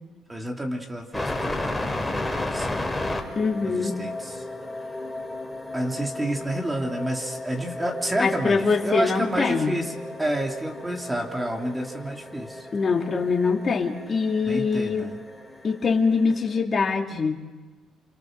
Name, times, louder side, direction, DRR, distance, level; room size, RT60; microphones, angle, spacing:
voice 1, 0.3-4.4 5.7-9.9 10.2-12.7 14.4-15.2, right 1 dB, 15° right, 1 dB, 3.2 m, -30 dB
sound 1, 1.1-16.6, left 2 dB, 10° left, 4.0 m, -34 dB
voice 2, 3.3-4.0 8.2-9.8 12.7-15.1 15.6-17.4, left 4 dB, 40° left, 2 dB, 3.2 m, -23 dB
27.5 x 26.5 x 6.7 m, 1.2 s
cardioid pair, 80°, 0 cm